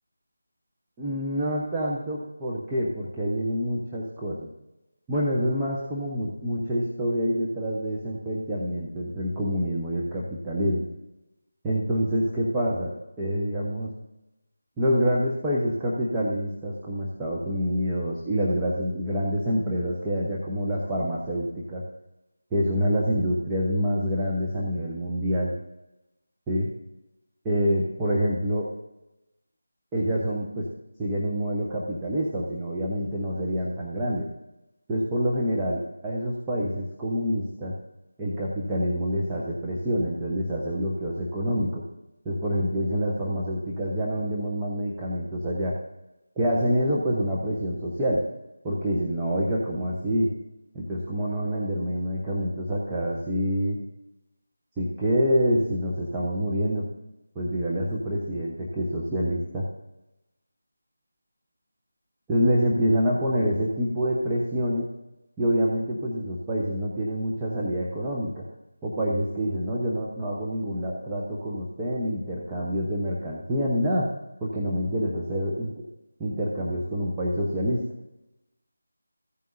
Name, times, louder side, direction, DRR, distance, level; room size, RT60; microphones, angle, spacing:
voice 1, 1.0-4.5 5.1-10.8 11.6-13.9 14.8-21.8 22.5-25.5 26.5-26.7 27.4-28.6 29.9-30.7 31.0-34.3 34.9-37.7 38.2-41.8 42.2-45.7 46.4-48.2 48.6-50.3 50.7-53.8 54.8-56.8 57.3-59.7 62.3-64.9 65.4-68.4 68.8-74.1 74.4-75.7 76.2-77.8, equal, 10° right, -6 dB, 1.1 m, -26 dB
15.0 x 9.2 x 2.7 m, 0.96 s
figure-of-eight pair, 165°, 0 cm